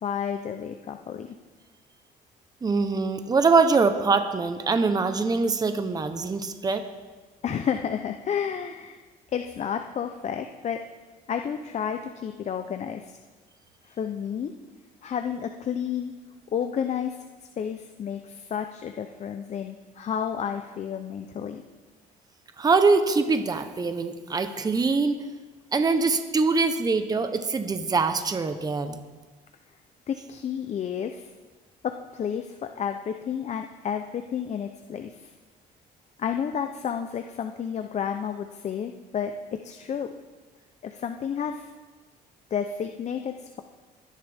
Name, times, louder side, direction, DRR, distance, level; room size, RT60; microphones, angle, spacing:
voice 1, 0.0-1.4 7.4-9.0 9.3-10.8 11.3-13.2 13.9-14.5 15.0-16.1 16.5-17.2 17.6-21.6 30.1-31.3 31.8-35.3 36.2-40.1 40.8-41.7 42.5-43.6, left 8 dB, 40° left, 6 dB, 0.7 m, -31 dB
voice 2, 2.6-6.8 22.6-25.1 25.7-29.0, right 4 dB, 25° right, 8 dB, 0.9 m, -23 dB
22.5 x 10.5 x 3.6 m, 1.3 s
cardioid pair, 110°, 17 cm